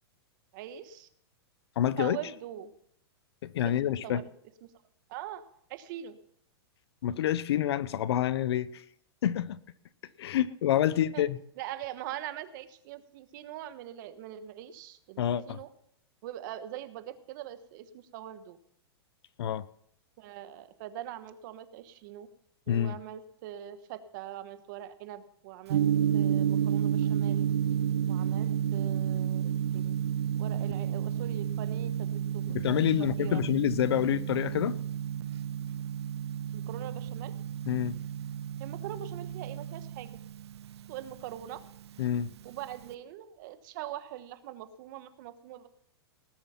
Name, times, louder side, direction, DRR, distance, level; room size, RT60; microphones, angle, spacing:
voice 1, 0.5-1.1 2.0-2.7 3.6-4.3 4.6-4.7 5.1-5.4 5.7-6.2 11.1-11.2 11.6-15.7 16.2-18.6 20.2-22.3 22.7-27.5 28.1-30.0 30.3-32.6 33.0-33.4 36.5-37.3 38.6-40.2 40.9-41.6 42.4-45.7, right 12 dB, 50° right, 1.2 m, -42 dB
voice 2, 1.8-2.2 3.4-4.2 7.0-8.8 9.2-9.6 10.2-11.4 15.2-15.6 19.4-19.7 22.7-23.0 32.5-34.8 37.7-38.0 42.0-42.3, left 11 dB, 75° left, 0.8 m, -27 dB
Gong, 25.7-42.9, right 9 dB, 85° right, 0.9 m, -31 dB
19.0 x 7.3 x 5.7 m
hypercardioid pair, 150°, 14 cm